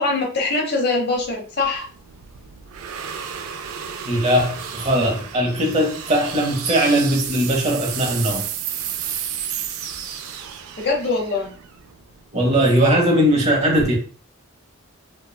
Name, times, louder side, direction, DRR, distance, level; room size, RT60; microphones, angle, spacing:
voice 1, 0.0-1.9 10.8-11.5, left 3 dB, 50° left, 0 dB, 0.8 m, -22 dB
sound 1, 1.2-12.5, right 8 dB, 75° right, 0.3 m, -32 dB
voice 2, 4.1-8.5 12.3-13.9, equal, 30° right, -1 dB, 0.8 m, -19 dB
3.2 x 2.2 x 2.2 m, 0.41 s
head